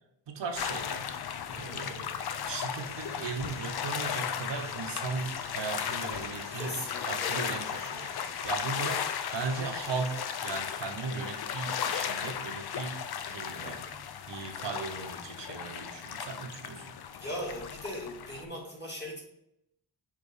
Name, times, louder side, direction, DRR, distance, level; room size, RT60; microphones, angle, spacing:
voice 1, 0.3-1.1 1.5-2.2 2.5-6.8 7.1-13.9 14.3-17.0, right 4 dB, 70° right, 4 dB, 0.9 m, -37 dB
sound 1, 0.6-18.4, left 8 dB, 60° left, 0.5 m, -36 dB
sound 2, 2.7-10.6, right 2 dB, 15° right, 0.9 m, -55 dB
voice 2, 6.5-7.4 13.5-13.9 17.2-19.2, left 1 dB, 25° left, -4 dB, 2.0 m, -39 dB
6.4 x 3.1 x 5.0 m, 0.79 s
wide cardioid pair, 170°, 45 cm